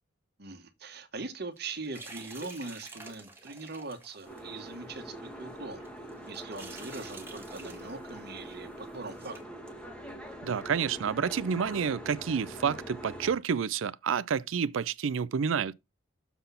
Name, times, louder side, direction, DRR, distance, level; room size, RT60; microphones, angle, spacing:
voice 1, 0.4-5.8 6.3-9.4, right 3 dB, 55° right, 1.2 m, -41 dB
sound 1, 1.6-4.7 5.1-5.2 5.8-8.1 8.4-8.5 8.9-9.4, right 2 dB, 10° right, 1.4 m, -48 dB
Boat Water vehicle, 4.2-13.3, equal, 5° left, 1.2 m, -44 dB
voice 2, 10.4-15.7, right 6 dB, 85° right, 0.4 m, -29 dB
7.0 x 4.0 x 5.5 m
head